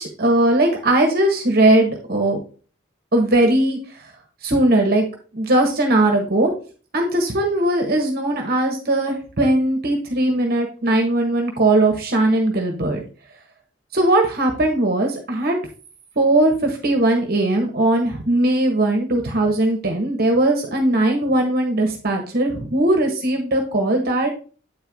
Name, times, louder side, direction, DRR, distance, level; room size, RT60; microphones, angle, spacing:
voice 1, 0.0-2.4 3.1-3.8 4.4-5.0 5.3-6.5 6.9-13.0 13.9-15.6 16.2-24.4, right 1 dB, 50° right, 3 dB, 1.4 m, -19 dB
8.5 x 4.5 x 3.5 m, 0.38 s
head